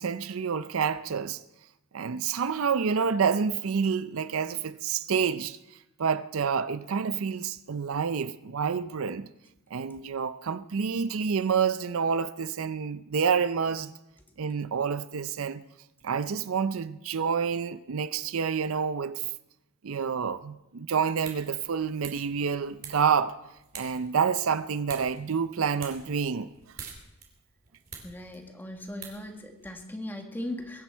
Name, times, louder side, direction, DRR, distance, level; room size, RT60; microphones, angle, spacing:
voice 1, 0.0-1.4 1.9-5.6 6.0-9.3 9.7-13.9 14.4-15.6 16.0-19.2 19.8-23.4 23.7-26.5, right 6 dB, 70° right, 0.5 m, -28 dB
sound 1, 21.1-29.8, right 6 dB, 45° right, 3.2 m, -48 dB
voice 2, 28.0-30.8, left 1 dB, 10° left, 1.6 m, -38 dB
23.0 x 10.5 x 4.5 m
head